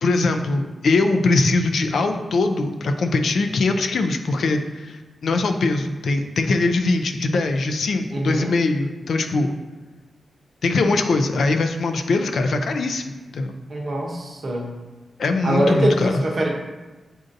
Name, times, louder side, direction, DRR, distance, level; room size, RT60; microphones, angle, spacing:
voice 1, 0.0-9.5 10.6-13.5 15.2-16.2, left 3 dB, 65° left, 6 dB, 0.3 m, -21 dB
voice 2, 8.1-8.5 13.7-14.7 15.4-16.6, right 1 dB, 40° right, 0 dB, 0.7 m, -23 dB
7.5 x 2.6 x 2.5 m, 1.2 s
wide cardioid pair, 155°, 0 cm